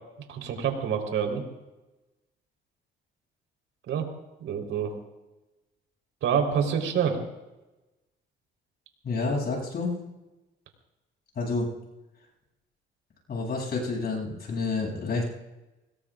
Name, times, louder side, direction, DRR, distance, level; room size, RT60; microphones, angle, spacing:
voice 1, 0.3-1.4 3.9-4.1 4.4-4.9 6.2-7.2, right 7 dB, 80° right, 3 dB, 4.2 m, -27 dB
voice 2, 9.0-9.9 11.3-11.7 13.3-15.2, left 3 dB, 55° left, -2 dB, 8.0 m, -29 dB
26.0 x 20.5 x 2.6 m, 1.0 s
cardioid pair, 90°, 20 cm